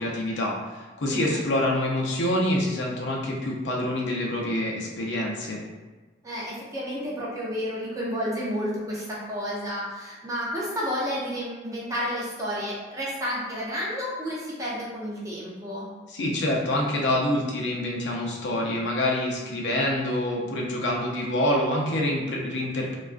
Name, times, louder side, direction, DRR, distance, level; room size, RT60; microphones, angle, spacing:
voice 1, 0.0-5.6 16.1-23.0, left 1 dB, 75° left, -2 dB, 0.5 m, -26 dB
voice 2, 1.1-1.4 6.2-15.9, equal, 20° right, -6 dB, 0.5 m, -31 dB
2.3 x 2.2 x 2.4 m, 1.3 s
head